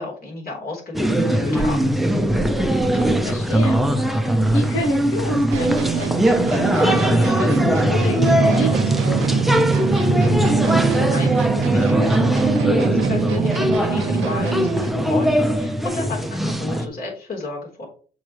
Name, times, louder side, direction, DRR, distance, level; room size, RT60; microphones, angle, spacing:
voice 1, 0.0-1.9 10.5-17.9, left 3 dB, 50° left, -1 dB, 3.8 m, -32 dB
sound 1, 0.9-16.9, equal, ahead, 0.8 m, -20 dB
voice 2, 2.9-9.4, equal, 85° left, 0 dB, 1.6 m, -29 dB
sound 2, 5.5-14.9, right 10 dB, 80° right, 0.7 m, -27 dB
Drum, 8.2-13.8, right 3 dB, 25° right, 0.6 m, -22 dB
6.6 x 5.5 x 3.2 m, 0.41 s
cardioid pair, 90°, 20 cm